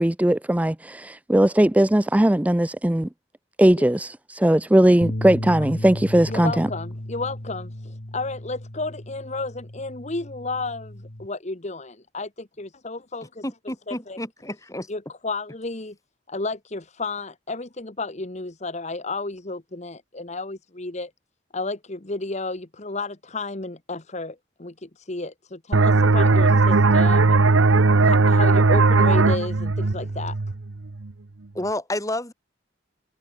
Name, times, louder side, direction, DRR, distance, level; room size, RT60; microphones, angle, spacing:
voice 1, 0.0-3.1 3.6-6.7, right 1 dB, 5° right, 0.4 m, -19 dB
sound 1, 5.0-11.3, left 1 dB, 50° left, 2.4 m, -35 dB
voice 2, 6.3-13.4 13.9-14.2 14.9-15.9 16.3-21.1 21.5-27.5 28.0-30.4, left 3 dB, 35° left, 1.3 m, -32 dB
voice 3, 13.4-14.9 31.5-32.3, left 1 dB, 15° left, 7.7 m, -30 dB
sound 2, 25.7-31.1, right 3 dB, 85° right, 0.9 m, -18 dB
head